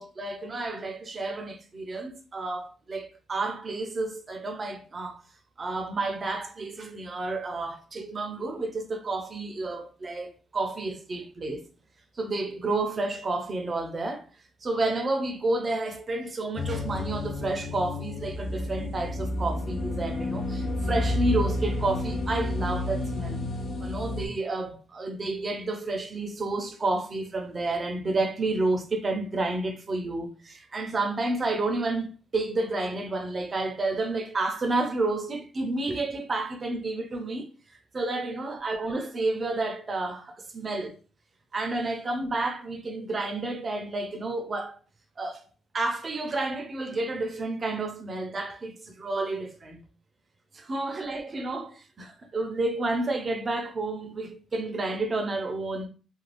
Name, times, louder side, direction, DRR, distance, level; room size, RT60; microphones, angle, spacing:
voice 1, 0.0-5.2 5.6-11.6 12.2-14.3 14.6-23.4 23.8-37.5 37.9-41.0 41.5-44.8 45.2-45.4 45.7-49.8 50.5-55.9, right 2 dB, 35° right, 0.6 m, -30 dB
sound 1, 16.6-24.3, left 1 dB, 45° left, 0.6 m, -30 dB
2.5 x 2.2 x 3.2 m
cardioid pair, 90°, 0 cm